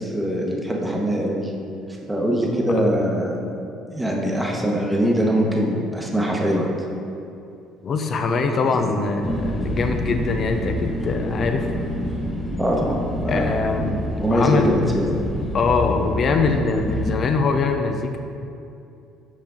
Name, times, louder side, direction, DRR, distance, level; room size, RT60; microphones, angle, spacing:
voice 1, 0.0-1.5 2.1-3.4 3.9-6.7 12.6-13.5 13.8-13.9 14.2-15.0, equal, 10° right, -2 dB, 0.9 m, -22 dB
voice 2, 7.8-11.7 13.3-14.0 14.3-14.9 15.5-18.2, left 4 dB, 50° left, 5 dB, 0.5 m, -23 dB
sound 1, 9.2-17.1, equal, 20° left, 1.1 m, -28 dB
5.9 x 4.4 x 3.7 m, 2.7 s
hypercardioid pair, 70°, 0 cm